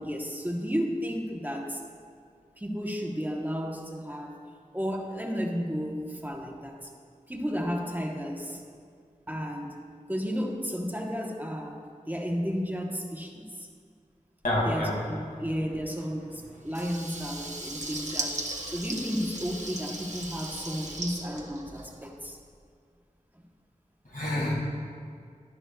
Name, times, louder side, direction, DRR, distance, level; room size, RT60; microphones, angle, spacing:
voice 1, 0.0-1.8 2.6-4.4 4.7-6.9 7.3-8.6 9.3-9.8 10.1-13.7 14.6-18.4 18.7-22.4 23.3-23.4, equal, 10° right, 0 dB, 1.0 m, -33 dB
voice 2, 14.4-15.0 24.1-24.5, left 1 dB, 85° left, -4 dB, 2.1 m, -27 dB
Water tap faucet / Liquid, 16.7-22.2, right 2 dB, 60° right, 1.0 m, -37 dB
11.0 x 11.0 x 2.3 m, 2.2 s
wide cardioid pair, 45°, 14 cm